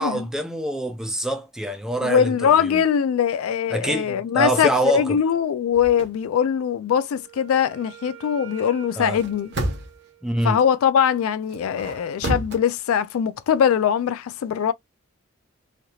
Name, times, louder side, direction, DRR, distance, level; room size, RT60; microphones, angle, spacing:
voice 1, 0.0-2.8 3.7-5.2 9.0-9.2 10.2-10.6, right 1 dB, 5° right, 0.4 m, -25 dB
voice 2, 2.0-9.5 10.4-14.7, left 8 dB, 90° left, 0.3 m, -21 dB
sound 1, 5.7-6.1 9.0-10.1 11.5-12.6, right 1 dB, 55° right, 0.9 m, -30 dB
Wind instrument woodwind instrument, 6.9-10.8, right 11 dB, 80° right, 1.0 m, -45 dB
3.2 x 2.7 x 2.2 m
head